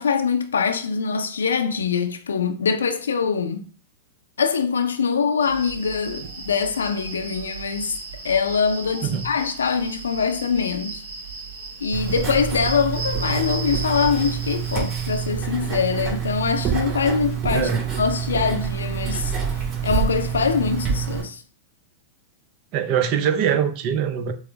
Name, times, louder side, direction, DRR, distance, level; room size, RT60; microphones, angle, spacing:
voice 1, 0.0-3.7 4.4-8.0 8.2-11.0 11.8-17.7 18.0-21.4, left 6 dB, 80° left, 0.5 m, -23 dB
sound 1, 5.4-15.3, right 4 dB, 75° right, 1.0 m, -35 dB
Writing, 11.9-21.2, right 7 dB, 30° right, 2.3 m, -27 dB
voice 2, 17.5-17.8 22.7-24.3, right 8 dB, 45° right, 0.6 m, -22 dB
6.3 x 2.1 x 3.3 m
hypercardioid pair, 100°, 0 cm